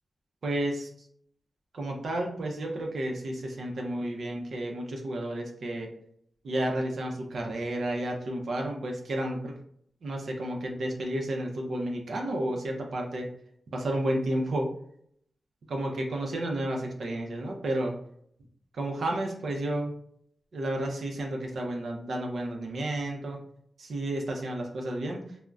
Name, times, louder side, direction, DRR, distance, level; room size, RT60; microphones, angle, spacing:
voice 1, 0.4-0.9 1.7-5.9 6.4-9.5 10.0-13.3 13.7-14.7 15.7-17.9 18.7-19.9 20.5-23.4 23.8-25.2, right 1 dB, 75° right, 1 dB, 0.6 m, -31 dB
3.6 x 2.1 x 2.3 m, 0.66 s
wide cardioid pair, 105°, 0 cm